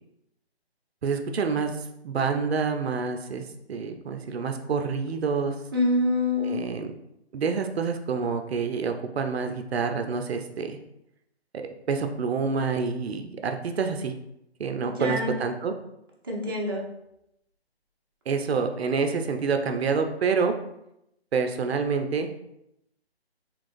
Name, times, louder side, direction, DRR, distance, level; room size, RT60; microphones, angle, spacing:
voice 1, 1.0-5.6 6.4-6.9 7.3-10.8 11.5-14.1 14.6-15.7 18.3-20.5 21.3-22.3, right 5 dB, 70° right, 6 dB, 0.6 m, -27 dB
voice 2, 5.7-6.6 14.8-15.3 16.2-16.8, left 2 dB, 20° right, -3 dB, 0.5 m, -26 dB
3.8 x 2.9 x 2.5 m, 0.82 s
figure-of-eight pair, 155°, 33 cm